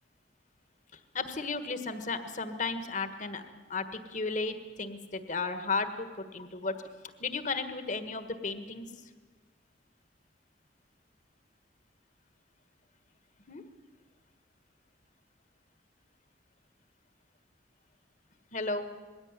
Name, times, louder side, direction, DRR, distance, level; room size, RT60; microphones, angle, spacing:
voice 1, 1.1-3.4 3.7-6.9 7.2-9.1 13.5-13.6 18.5-18.8, left 4 dB, 45° left, 10 dB, 1.5 m, -34 dB
21.0 x 16.5 x 9.7 m, 1.4 s
head